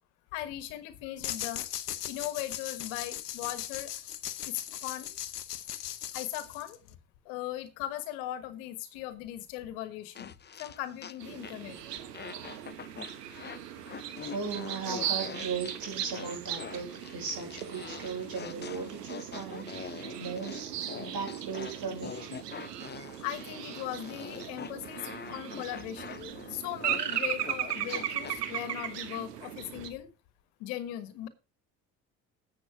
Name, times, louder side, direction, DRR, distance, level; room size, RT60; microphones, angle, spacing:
voice 1, 0.3-1.7 2.1-3.9 4.4-5.2 6.1-6.8 7.2-11.8 23.2-30.1 30.6-31.3, left 13 dB, 70° left, 14 dB, 1.4 m, -38 dB
sound 1, 1.2-6.9, left 12 dB, 90° left, 0.7 m, -38 dB
sound 2, 10.1-11.8 12.1-28.4, left 7 dB, 20° left, 0.7 m, -44 dB
sound 3, 11.2-29.9, right 10 dB, 85° right, 1.3 m, -38 dB
voice 2, 14.0-22.3, right 5 dB, 50° right, 1 dB, 6.1 m, -38 dB
10.5 x 7.7 x 4.7 m, 0.31 s
hypercardioid pair, 50°, 46 cm